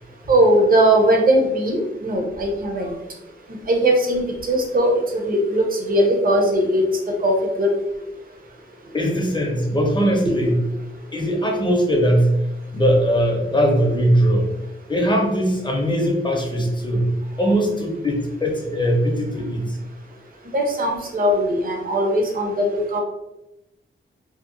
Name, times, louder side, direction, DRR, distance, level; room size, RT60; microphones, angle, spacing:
voice 1, 0.3-2.9 3.7-7.7 20.5-23.0, right 1 dB, 45° right, 1 dB, 0.6 m, -19 dB
voice 2, 8.9-10.6 11.1-12.4 12.7-14.5 14.9-17.1 17.4-19.8, equal, 20° left, 0 dB, 0.5 m, -20 dB
2.8 x 2.1 x 2.5 m, 0.93 s
wide cardioid pair, 130°, 21 cm